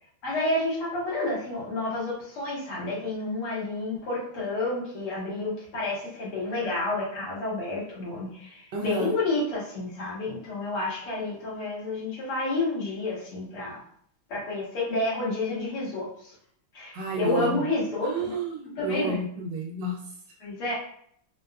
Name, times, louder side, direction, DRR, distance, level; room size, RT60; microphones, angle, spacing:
voice 1, 0.2-13.8 14.3-16.3 16.7-18.4 18.8-19.2 20.4-20.7, left 2 dB, 90° left, -7 dB, 2.3 m, -30 dB
voice 2, 8.7-9.1 16.9-17.7 18.0-20.2, right 2 dB, 75° right, -1 dB, 1.1 m, -31 dB
4.5 x 2.2 x 2.3 m, 0.64 s
omnidirectional pair, 2.3 m